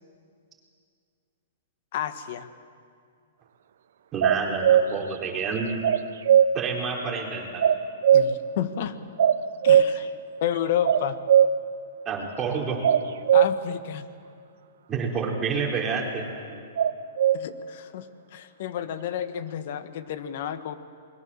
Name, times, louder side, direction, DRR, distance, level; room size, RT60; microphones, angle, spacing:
voice 1, 1.9-2.5 8.1-9.0 9.6-10.1 10.4-11.2 13.3-14.1 17.3-18.1 18.3-20.8, left 10 dB, 55° left, 11 dB, 1.6 m, -30 dB
voice 2, 4.1-5.7 6.5-7.6 12.1-12.8 14.9-16.3, right 5 dB, 20° right, 0 dB, 4.1 m, -28 dB
sound 1, 4.2-4.9 5.8-6.5 7.6-8.4 9.2-9.9 10.8-11.5 12.8-13.5 16.8-17.4, right 9 dB, 70° right, 0.9 m, -18 dB
27.0 x 21.5 x 7.4 m, 2.3 s
hypercardioid pair, 140°, 0 cm